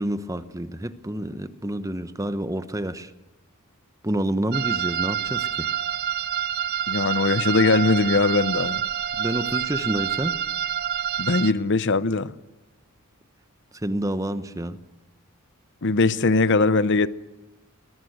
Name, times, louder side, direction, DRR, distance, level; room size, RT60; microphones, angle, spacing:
voice 1, 0.0-3.1 4.0-5.7 9.2-10.3 13.8-14.8, right 1 dB, 15° right, 0.9 m, -28 dB
sound 1, 4.5-11.5, right 9 dB, 45° right, 0.8 m, -27 dB
voice 2, 6.9-8.8 11.2-12.3 15.8-17.1, left 3 dB, 55° left, 0.8 m, -20 dB
24.5 x 21.0 x 8.0 m
head